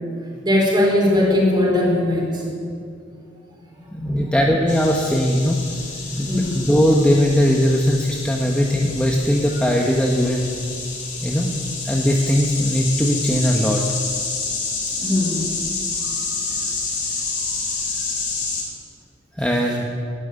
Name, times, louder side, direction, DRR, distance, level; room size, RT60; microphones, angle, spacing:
voice 1, 0.4-2.4 4.0-4.4 6.3-6.5 15.0-15.5, left 1 dB, 25° right, -2 dB, 4.2 m, -19 dB
voice 2, 3.9-5.6 6.2-10.5 11.2-11.6 11.8-13.8 19.4-19.8, equal, 5° left, -1 dB, 1.0 m, -19 dB
sound 1, 4.7-18.6, left 4 dB, 45° left, 3.8 m, -28 dB
12.0 x 10.5 x 9.6 m, 2.3 s
head